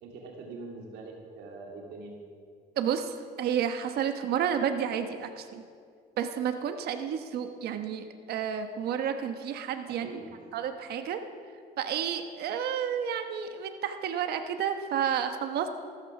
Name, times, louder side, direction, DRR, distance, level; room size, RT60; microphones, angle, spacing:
voice 1, 0.0-2.3 9.9-10.3, right 3 dB, 85° right, 0 dB, 2.4 m, -43 dB
voice 2, 2.8-5.6 6.2-10.2 10.5-11.2 11.8-15.7, right 8 dB, 70° right, 7 dB, 1.2 m, -31 dB
14.0 x 14.0 x 6.0 m, 2.2 s
cardioid pair, 110°, 17 cm